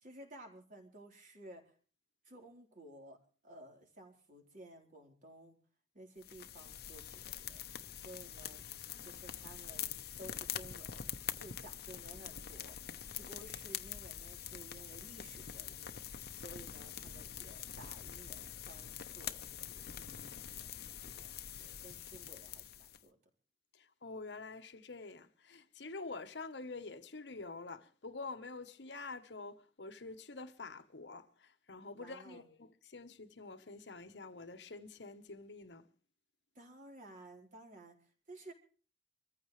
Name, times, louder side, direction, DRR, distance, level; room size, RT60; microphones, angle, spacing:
voice 1, 0.0-1.6 2.2-3.2 3.4-5.6 5.9-7.6 8.0-8.6 9.0-9.9 10.2-11.1 11.4-23.2 31.9-32.5 36.5-38.5, right 1 dB, 50° right, 4.2 m, -55 dB
sound 1, 6.2-23.0, left 10 dB, 65° left, 0.9 m, -45 dB
voice 2, 23.7-35.9, left 3 dB, 85° left, 1.2 m, -47 dB
25.5 x 14.5 x 3.2 m
head